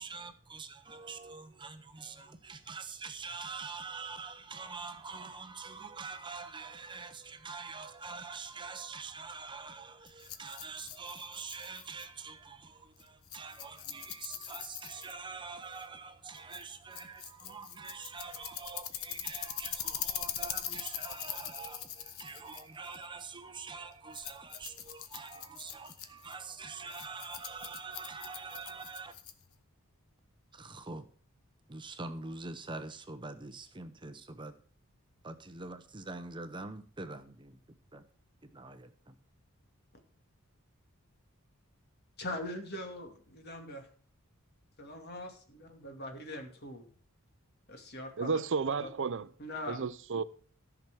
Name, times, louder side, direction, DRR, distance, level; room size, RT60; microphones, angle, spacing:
voice 1, 0.0-29.2 30.5-31.1 31.7-34.5 35.2-37.6 37.9-38.0 38.4-39.2, right 4 dB, 20° right, 0.8 m, -45 dB
Rattle, 10.1-29.6, left 10 dB, 75° left, 1.2 m, -43 dB
voice 2, 42.2-43.9 44.8-46.9 47.7-48.4 48.8-48.9 49.4-49.8, left 1 dB, 50° left, 2.5 m, -42 dB
voice 3, 48.2-49.3 49.7-50.2, right 5 dB, 60° right, 0.6 m, -32 dB
14.0 x 6.1 x 6.1 m
head